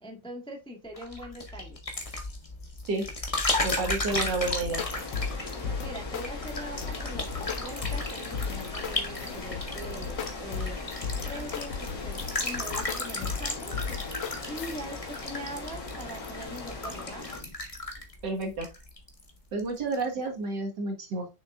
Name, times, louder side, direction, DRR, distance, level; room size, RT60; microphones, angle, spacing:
voice 1, 0.0-1.8 5.6-10.8 11.2-13.7 14.5-17.3, equal, 5° left, 0 dB, 1.4 m, -42 dB
sound 1, 1.0-19.3 19.6-20.0, left 2 dB, 20° left, 1.3 m, -35 dB
voice 2, 3.6-4.8 18.2-18.7 19.5-21.3, right 3 dB, 60° right, 2 dB, 2.2 m, -30 dB
sound 2, 4.1-14.8, left 5 dB, 75° left, 1.6 m, -36 dB
sound 3, 4.9-17.4, left 3 dB, 60° left, 2.6 m, -40 dB
7.0 x 6.3 x 2.5 m, 0.26 s
omnidirectional pair, 2.1 m